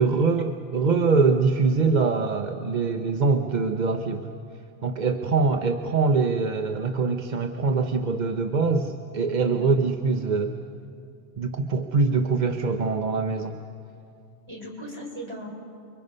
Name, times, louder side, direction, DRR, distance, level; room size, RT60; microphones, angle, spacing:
voice 1, 0.0-4.3 4.8-10.6 11.4-13.6, right 4 dB, 45° right, 5 dB, 0.9 m, -23 dB
voice 2, 14.5-15.5, equal, 25° right, 0 dB, 3.8 m, -38 dB
29.5 x 23.5 x 5.4 m, 2.4 s
omnidirectional pair, 1.1 m